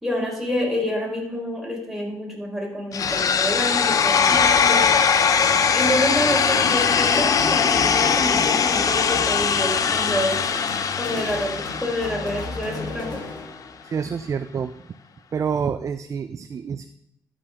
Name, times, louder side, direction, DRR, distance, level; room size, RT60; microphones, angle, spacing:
voice 1, 0.0-4.9 5.7-10.4 11.0-13.2, equal, ahead, -2 dB, 4.4 m, -27 dB
sound 1, 2.9-12.9, left 6 dB, 55° left, 0.7 m, -21 dB
sound 2, 5.4-13.9, left 4 dB, 85° left, 1.6 m, -35 dB
voice 2, 13.8-14.7 15.3-16.9, right 6 dB, 45° right, 9 dB, 0.5 m, -27 dB
12.5 x 6.3 x 3.8 m, 0.76 s
cardioid pair, 70°, 7 cm